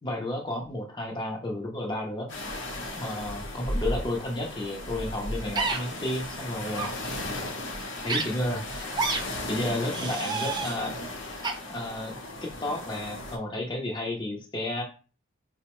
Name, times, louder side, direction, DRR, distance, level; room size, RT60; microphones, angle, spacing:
voice 1, 0.0-2.3 2.9-6.9 8.0-8.7 9.5-10.9 11.7-14.8, left 1 dB, 25° left, -1 dB, 0.6 m, -32 dB
sound 1, 2.3-13.4, left 1 dB, 65° left, 0.7 m, -36 dB
sound 2, 5.6-5.8 6.7-6.9 8.1-8.2 9.0-9.2 9.9-10.8 11.4-11.5, right 4 dB, 20° right, 0.5 m, -29 dB
4.4 x 2.1 x 2.9 m, 0.35 s
head